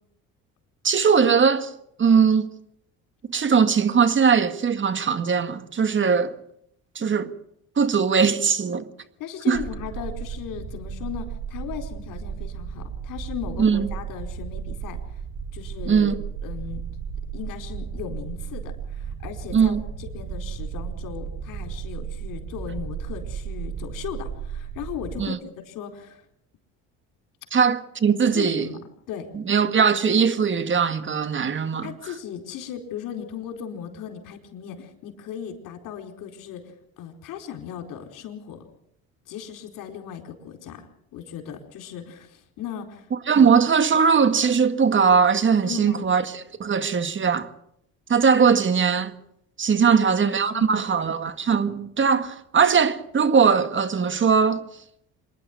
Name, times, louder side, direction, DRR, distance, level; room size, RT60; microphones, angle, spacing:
voice 1, 0.8-1.7 2.0-2.5 3.3-6.4 7.0-7.3 7.8-8.9 9.5-9.6 13.6-13.9 15.9-16.2 19.5-19.8 25.2-25.4 27.5-28.7 29.3-31.9 43.3-47.5 48.1-49.1 49.6-54.6, right 6 dB, 35° right, 1.8 m, -20 dB
voice 2, 9.2-15.0 15.5-16.1 16.4-16.8 17.3-25.4 25.6-26.2 28.3-29.3 31.8-38.7 39.3-40.9 41.1-43.1 43.3-43.5 45.6-46.1 49.8-50.1 50.5-51.1, left 8 dB, 75° left, 4.4 m, -37 dB
sound 1, 9.5-25.2, right 7 dB, 85° right, 4.5 m, -34 dB
26.5 x 11.0 x 9.5 m
supercardioid pair, 90°, 33 cm